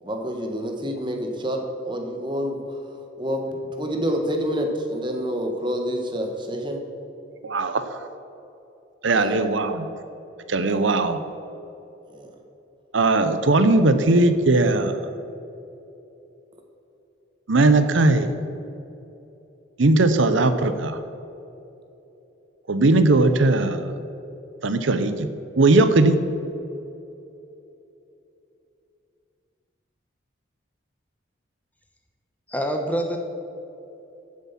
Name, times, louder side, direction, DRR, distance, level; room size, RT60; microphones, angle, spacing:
voice 1, 0.0-6.8 9.1-9.4 10.7-10.9 12.1-12.3, equal, 25° right, 3 dB, 1.4 m, -28 dB
voice 2, 7.4-8.0 9.0-9.9 10.5-11.2 12.9-15.1 17.5-18.3 19.8-21.0 22.7-24.1 24.6-25.3 25.6-26.2, right 2 dB, 80° right, 10 dB, 0.8 m, -19 dB
voice 3, 32.5-33.2, right 1 dB, 10° left, 3 dB, 1.0 m, -25 dB
15.0 x 7.5 x 5.9 m, 3.0 s
head